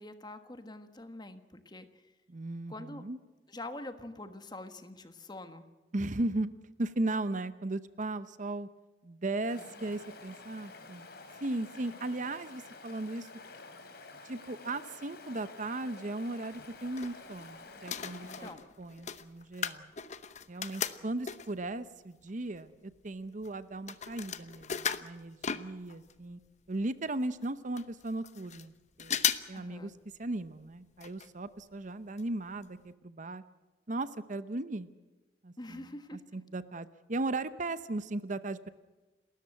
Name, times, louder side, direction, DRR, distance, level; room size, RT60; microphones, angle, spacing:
voice 1, 0.0-2.0 2.7-3.0 3.5-5.6 9.6-9.7 18.2-18.6 29.5-29.9 35.6-36.4, left 2 dB, 25° left, 9 dB, 1.4 m, -45 dB
voice 2, 2.3-3.2 5.9-6.5 6.8-8.7 9.0-11.1 11.4-13.3 14.2-18.5 18.8-19.9 20.5-26.4 26.7-29.2 29.5-29.9 30.2-33.4 33.9-34.9 35.4-35.8 36.3-38.7, right 2 dB, 45° right, 14 dB, 0.8 m, -37 dB
Stream, 9.5-18.5, left 3 dB, 65° left, 3.0 m, -50 dB
sound 1, 16.6-17.5 17.8-21.7 22.3-22.4 22.6-26.2 26.5-26.6 26.7-26.8 27.4-27.5 27.8-28.7 29.0-29.6 29.9-30.0 31.0-31.3 31.6-31.7 32.2-32.3 32.6-32.7, left 8 dB, 40° left, 0.9 m, -36 dB
29.5 x 13.5 x 7.9 m, 1.2 s
head